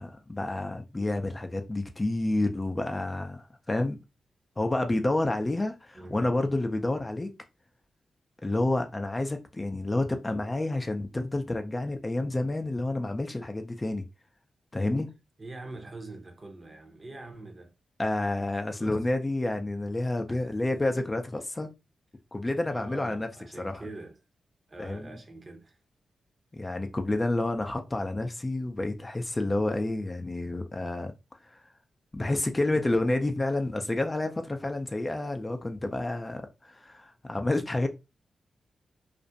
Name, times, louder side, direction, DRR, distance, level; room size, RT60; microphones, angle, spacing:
voice 1, 0.0-4.0 4.6-7.3 8.4-14.1 14.7-15.1 18.0-21.7 22.3-23.3 23.6-23.8 24.8-25.1 26.5-31.1 31.4-31.6 32.1-37.9, left 2 dB, 25° left, 0.4 m, -29 dB
voice 2, 15.4-17.7 18.7-19.0 20.3-20.6 22.7-24.2 24.7-25.8, right 2 dB, 40° right, 0.7 m, -44 dB
2.5 x 2.1 x 2.6 m
supercardioid pair, 45°, 0 cm